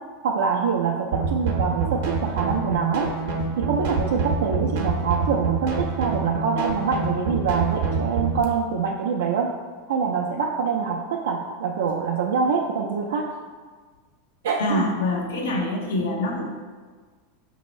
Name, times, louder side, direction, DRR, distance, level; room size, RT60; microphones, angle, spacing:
voice 1, 0.2-3.1 3.6-9.5 9.9-13.3 14.4-14.9, right 6 dB, 85° right, -1 dB, 0.4 m, -25 dB
sound 1, 1.1-8.4, right 4 dB, 65° right, 0.7 m, -26 dB
voice 2, 14.6-16.4, left 2 dB, 85° left, 1 dB, 0.8 m, -25 dB
5.1 x 2.7 x 3.1 m, 1.5 s
supercardioid pair, 135°, 0 cm